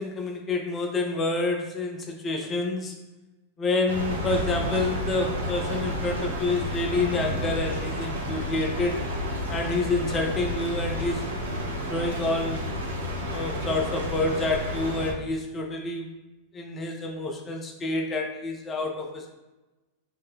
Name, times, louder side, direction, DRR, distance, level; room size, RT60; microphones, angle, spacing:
voice 1, 0.0-3.0 3.6-9.0 9.5-11.3 11.6-12.6 13.3-16.1 16.5-19.3, left 3 dB, 20° left, 2 dB, 0.5 m, -28 dB
sound 1, 3.9-15.1, equal, 70° right, 0.6 m, -31 dB
3.3 x 2.1 x 3.5 m, 1.1 s
figure-of-eight pair, 90°, 0 cm